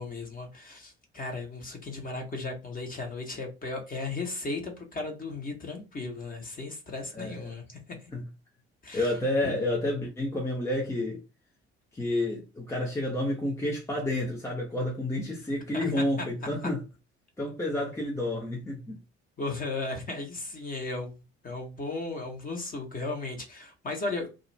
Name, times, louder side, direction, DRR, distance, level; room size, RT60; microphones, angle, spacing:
voice 1, 0.0-8.1 8.8-9.1 9.4-9.5 15.7-15.8 19.4-21.2 21.4-24.3, left 3 dB, 25° left, 1.0 m, -36 dB
voice 2, 7.1-7.4 8.1-8.2 8.9-11.2 11.9-16.8 17.4-19.0, left 1 dB, 10° left, 0.7 m, -30 dB
2.5 x 2.4 x 3.1 m
figure-of-eight pair, 55°, 34 cm